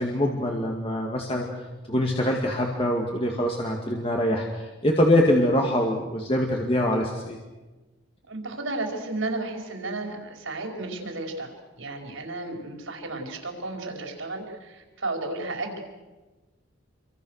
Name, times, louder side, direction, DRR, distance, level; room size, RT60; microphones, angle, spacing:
voice 1, 0.0-1.5 1.9-7.4, left 1 dB, 25° left, 0 dB, 2.2 m, -24 dB
voice 2, 8.3-15.8, right 2 dB, 75° right, 2 dB, 5.1 m, -33 dB
28.5 x 24.0 x 6.6 m, 1.2 s
head